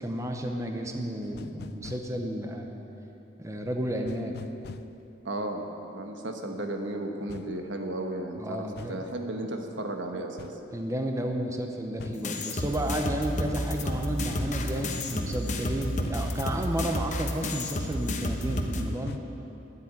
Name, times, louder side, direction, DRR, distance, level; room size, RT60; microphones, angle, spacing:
voice 1, 0.0-2.7 3.4-4.4 8.4-9.0 10.7-19.2, right 1 dB, 15° right, 3 dB, 0.8 m, -32 dB
sound 1, 1.2-2.1 4.1-4.9 7.3-7.5 8.8-9.0 10.4-10.6 12.0-12.3 14.4-16.8 18.5-19.2, left 4 dB, 60° left, 0.4 m, -43 dB
voice 2, 5.2-10.5, right 1 dB, 85° right, 4 dB, 1.2 m, -34 dB
sound 2, 12.2-18.8, left 1 dB, 40° left, 0.9 m, -31 dB
10.0 x 8.1 x 9.6 m, 3.0 s
head